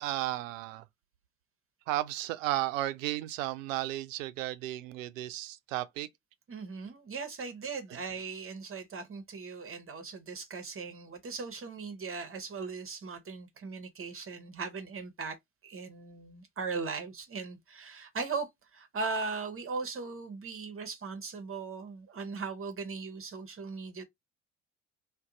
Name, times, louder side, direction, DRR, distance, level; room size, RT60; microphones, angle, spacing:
voice 1, 0.0-0.8 1.9-6.1, right 15 dB, 80° right, 0.5 m, -34 dB
voice 2, 6.5-15.4 15.6-24.0, right 4 dB, 35° right, 0.8 m, -38 dB
2.6 x 2.2 x 3.7 m
hypercardioid pair, 55°, 38 cm